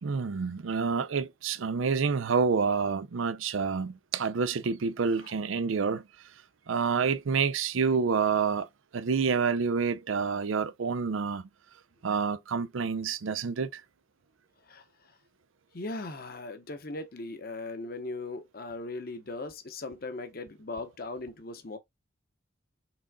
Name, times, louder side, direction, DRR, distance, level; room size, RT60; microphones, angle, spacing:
voice 1, 0.0-6.0 6.7-8.7 8.9-11.5 12.0-13.8, right 5 dB, 80° right, 0.5 m, -28 dB
voice 2, 15.7-21.8, left 2 dB, 45° left, 0.8 m, -38 dB
6.1 x 3.7 x 2.2 m
head